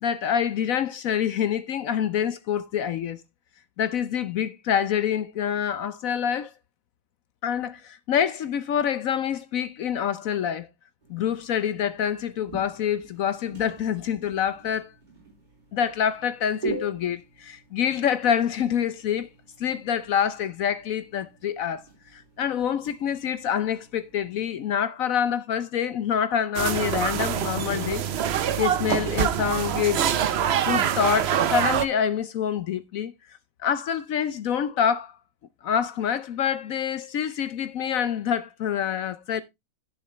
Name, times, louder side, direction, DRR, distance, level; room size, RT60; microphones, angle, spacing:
voice 1, 0.0-3.2 3.8-6.5 7.4-10.7 11.1-14.9 15.7-19.3 19.6-21.8 22.1-28.0 28.6-30.0 30.6-33.1 33.6-35.1 35.6-39.4, left 8 dB, 65° left, 0.9 m, -26 dB
sound 1, 11.0-24.7, right 3 dB, 25° right, 3.5 m, -43 dB
sound 2, 26.5-31.8, right 9 dB, 70° right, 0.6 m, -25 dB
10.5 x 7.0 x 3.2 m
omnidirectional pair, 1.9 m